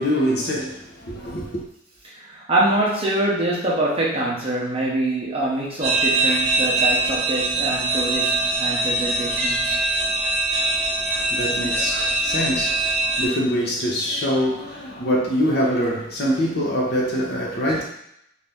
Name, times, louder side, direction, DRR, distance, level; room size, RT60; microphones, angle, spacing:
voice 1, 0.0-1.6 11.2-17.8, equal, 55° left, 0.7 m, -24 dB
voice 2, 2.0-9.8, right 1 dB, 30° right, 0.7 m, -24 dB
sound 1, 5.8-13.3, right 2 dB, 60° right, 1.0 m, -22 dB
2.8 x 2.5 x 3.4 m
head